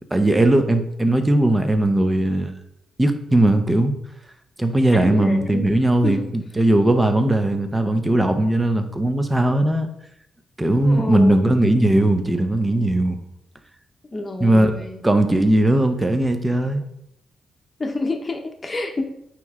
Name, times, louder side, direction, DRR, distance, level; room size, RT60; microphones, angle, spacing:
voice 1, 0.1-2.5 3.0-3.9 4.6-9.9 10.6-13.2 14.4-14.8 15.0-16.8, right 1 dB, 15° right, 7 dB, 0.7 m, -18 dB
voice 2, 4.9-5.7 6.0-6.3 9.5-9.6 10.8-11.5 14.1-15.0 17.8-19.0, left 2 dB, 25° left, 4 dB, 1.0 m, -28 dB
9.1 x 3.1 x 3.7 m, 0.77 s
cardioid pair, 105°, 0 cm